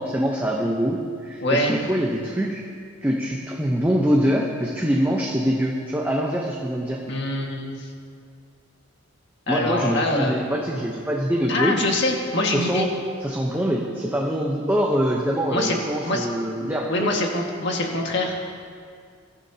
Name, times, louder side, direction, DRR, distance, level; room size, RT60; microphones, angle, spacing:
voice 1, 0.0-2.6 3.0-7.0 9.5-11.8 12.5-12.9 13.2-17.1, equal, 10° right, -2 dB, 0.9 m, -24 dB
voice 2, 1.4-1.8 7.1-7.9 9.5-10.4 10.7-10.8 11.5-12.9 15.5-15.8 16.0-16.3 16.9-18.4, left 1 dB, 55° left, 0 dB, 1.8 m, -24 dB
22.5 x 14.0 x 2.9 m, 2.2 s
head